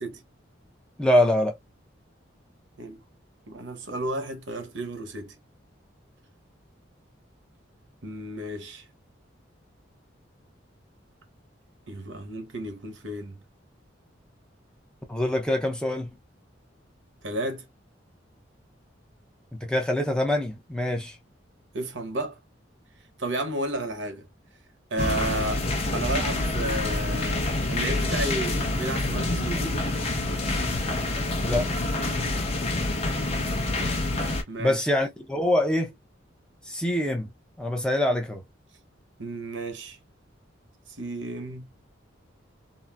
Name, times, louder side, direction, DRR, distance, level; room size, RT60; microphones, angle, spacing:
voice 1, 1.0-1.6 15.1-16.1 19.5-21.2 31.4-31.7 34.6-35.9 36.7-37.3 37.6-38.4, left 1 dB, 5° left, 0.5 m, -24 dB
voice 2, 3.5-5.3 8.0-8.8 11.9-13.4 17.2-17.7 21.7-22.4 23.2-24.3 24.9-25.7 25.9-29.8 34.5-34.8 39.2-40.0 41.0-41.7, right 1 dB, 75° right, 0.9 m, -32 dB
sound 1, 25.0-34.4, left 2 dB, 30° left, 0.8 m, -27 dB
3.9 x 2.0 x 2.2 m
head